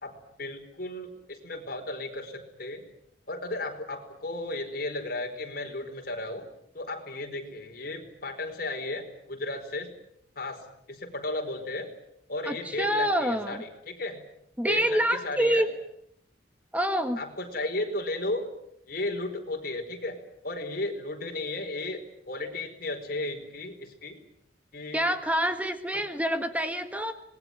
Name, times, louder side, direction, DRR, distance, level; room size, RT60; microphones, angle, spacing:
voice 1, 0.0-2.8 3.3-6.5 6.7-9.9 10.4-10.6 10.9-11.9 12.3-14.2 14.7-15.6 17.2-18.5 18.9-20.2 20.4-24.2 24.7-25.1 25.9-26.0, left 2 dB, 55° left, 4 dB, 4.9 m, -34 dB
voice 2, 12.4-13.6 14.6-15.7 16.7-17.2 24.9-27.1, right 1 dB, 10° right, 8 dB, 1.5 m, -26 dB
26.0 x 20.5 x 9.4 m, 0.76 s
head